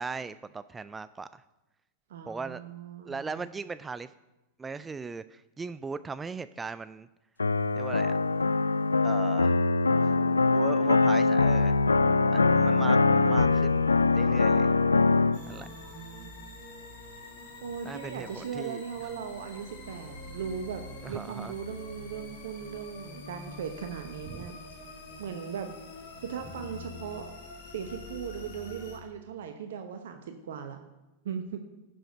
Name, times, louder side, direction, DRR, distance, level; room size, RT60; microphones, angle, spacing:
voice 1, 0.0-1.4 2.3-2.6 3.0-4.1 4.6-7.1 7.7-8.1 9.0-9.6 10.5-11.8 12.3-14.7 15.5-15.7 17.9-18.8 21.0-21.5 24.3-24.5, right 4 dB, 15° right, 14 dB, 0.3 m, -38 dB
voice 2, 2.1-3.5 13.1-13.9 15.3-16.3 17.6-24.6 25.2-25.8 26.2-27.3 27.7-30.8 31.2-31.6, right 7 dB, 60° right, 6 dB, 0.9 m, -38 dB
sound 1, 7.4-15.4, left 3 dB, 80° left, 0.3 m, -23 dB
sound 2, 15.3-29.0, left 2 dB, 50° left, 2.1 m, -46 dB
7.5 x 7.0 x 8.0 m, 1.0 s
figure-of-eight pair, 90°, 0 cm